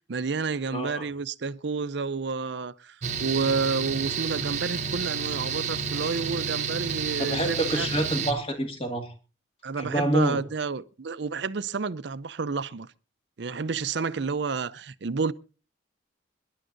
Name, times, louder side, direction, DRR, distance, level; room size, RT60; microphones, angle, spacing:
voice 1, 0.1-7.9 9.6-12.9 13.4-15.3, right 4 dB, 65° right, 0.5 m, -30 dB
voice 2, 0.7-1.1 7.2-9.1 9.8-10.4, right 1 dB, 30° left, 2.0 m, -27 dB
Mechanical fan, 3.0-8.3, right 6 dB, 40° right, 0.9 m, -30 dB
25.5 x 11.0 x 2.6 m
head